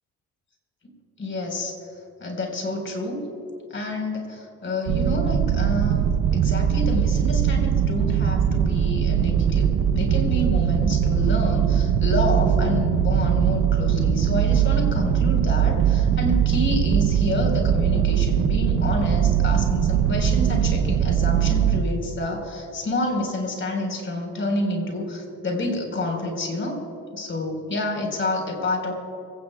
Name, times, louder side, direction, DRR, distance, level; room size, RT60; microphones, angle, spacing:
voice 1, 1.2-1.8 2.2-3.2 3.7-9.7 9.9-26.8 27.1-28.9, left 1 dB, 40° left, 2 dB, 4.4 m, -28 dB
sound 1, 4.9-21.8, right 8 dB, 70° right, 0.9 m, -21 dB
25.5 x 17.0 x 2.3 m, 2.5 s
cardioid pair, 90°, 30 cm